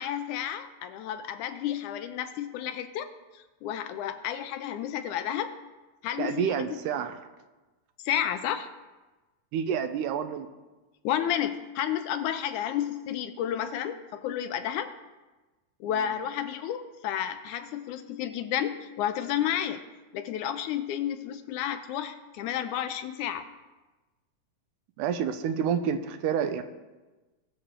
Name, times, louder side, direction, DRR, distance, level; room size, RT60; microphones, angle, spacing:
voice 1, 0.0-3.1 3.3-5.6 6.0-6.7 8.0-8.7 11.0-14.9 15.8-19.8 20.1-23.5, left 10 dB, 80° left, 9 dB, 1.9 m, -31 dB
voice 2, 6.2-7.2 9.5-10.5 25.0-26.6, right 8 dB, 85° right, 9 dB, 2.1 m, -28 dB
20.0 x 7.0 x 3.7 m, 1.2 s
omnidirectional pair, 3.8 m